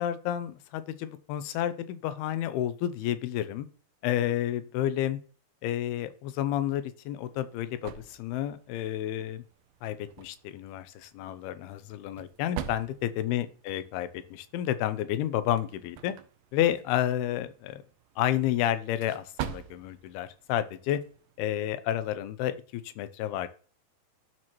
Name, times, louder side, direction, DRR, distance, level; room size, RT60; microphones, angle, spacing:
voice 1, 0.0-3.7 4.0-5.2 5.6-9.4 9.8-16.1 16.5-17.8 18.2-21.0 21.4-23.5, left 12 dB, 85° left, 12 dB, 2.6 m, -30 dB
sound 1, 6.9-21.4, right 10 dB, 80° right, 1.9 m, -46 dB
12.5 x 4.4 x 3.0 m, 0.41 s
omnidirectional pair, 4.4 m